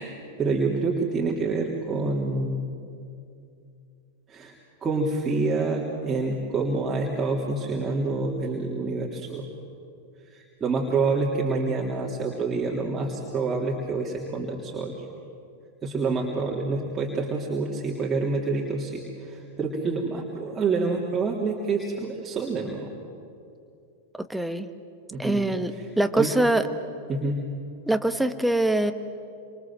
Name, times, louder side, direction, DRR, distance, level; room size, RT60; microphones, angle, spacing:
voice 1, 0.0-2.7 4.3-4.5 4.8-9.5 10.3-15.1 15.8-22.9 25.1-25.4 25.8-25.9 26.2-26.3 27.1-27.4, right 3 dB, 20° right, -3 dB, 3.4 m, -27 dB
voice 2, 24.3-24.7 25.2-26.7 27.9-28.9, right 1 dB, 5° right, 9 dB, 1.6 m, -23 dB
28.5 x 26.5 x 7.7 m, 2.5 s
figure-of-eight pair, 95°, 0 cm